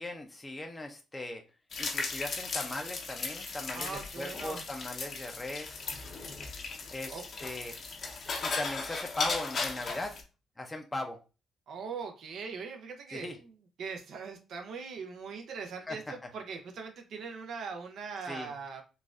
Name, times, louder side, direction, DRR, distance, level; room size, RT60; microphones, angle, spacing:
voice 1, 0.0-1.4 1.8-5.8 6.9-7.8 8.4-10.1 10.6-11.2 13.1-13.4 15.9-16.0 18.2-18.5, left 2 dB, 15° left, 3 dB, 0.5 m, -39 dB
sound 1, 1.7-10.2, left 4 dB, 55° left, 0.7 m, -37 dB
voice 2, 3.7-4.6 7.1-7.2 11.7-13.5 13.8-18.8, right 5 dB, 70° right, 4 dB, 0.5 m, -41 dB
4.0 x 2.3 x 2.4 m, 0.31 s
cardioid pair, 90°, 0 cm